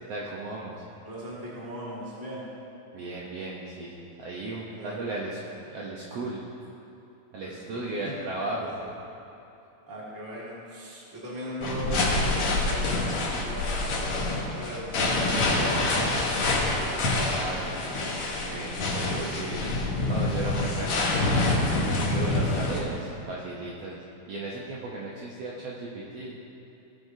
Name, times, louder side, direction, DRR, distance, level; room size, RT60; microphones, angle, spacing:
voice 1, 0.1-0.8 2.9-6.4 7.3-8.7 17.3-18.1 18.4-19.7 20.1-21.3 22.0-26.3, right 2 dB, 70° right, -4 dB, 1.6 m, -36 dB
voice 2, 1.0-2.4 4.7-5.0 7.4-8.1 8.6-8.9 9.9-14.0 14.3-16.9, right 1 dB, 10° right, -7 dB, 1.2 m, -39 dB
sound 1, 11.6-22.8, left 2 dB, 55° left, 1.9 m, -26 dB
16.5 x 7.7 x 2.7 m, 2.9 s
omnidirectional pair, 3.6 m